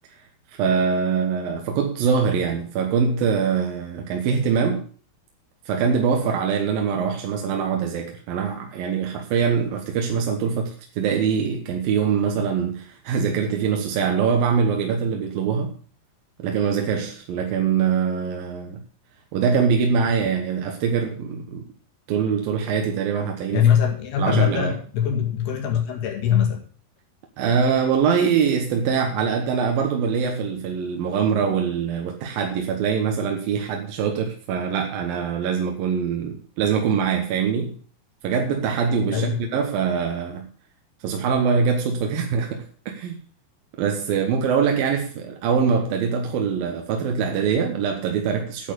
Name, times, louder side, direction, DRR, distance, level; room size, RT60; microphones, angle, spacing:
voice 1, 0.5-4.9 5.7-15.7 16.4-18.8 19.3-21.7 22.1-23.7 24.2-24.7 27.4-37.8 38.2-40.5 41.0-43.2 43.8-48.7, right 6 dB, 70° right, 2.9 m, -23 dB
voice 2, 23.5-26.6 39.1-39.4, left 9 dB, 85° left, 4.0 m, -22 dB
9.6 x 8.9 x 6.8 m
omnidirectional pair, 4.5 m